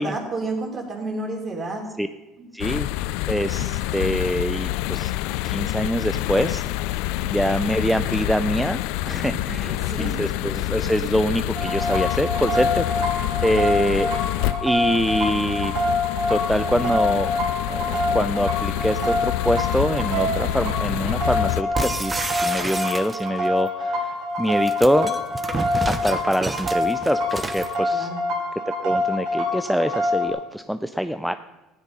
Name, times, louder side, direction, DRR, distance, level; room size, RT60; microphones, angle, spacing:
voice 1, 0.0-1.9 2.4-2.5 9.2-10.1 27.9-28.2, right 2 dB, 35° right, 2 dB, 3.3 m, -31 dB
voice 2, 2.5-2.9 3.3-5.1 5.4-6.6 7.2-12.9 13.4-14.1 14.6-15.7 16.3-17.3 17.7-25.2 25.8-28.1 28.7-31.4, equal, ahead, 10 dB, 0.4 m, -24 dB
sound 1, 2.6-21.6, left 15 dB, 80° left, 0.4 m, -27 dB
sound 2, 11.6-30.3, left 2 dB, 65° right, 3.6 m, -26 dB
sound 3, 21.7-23.5 24.4-27.7, right 3 dB, 15° right, 0.9 m, -30 dB
15.5 x 9.9 x 5.5 m, 1.1 s
cardioid pair, 125°, 0 cm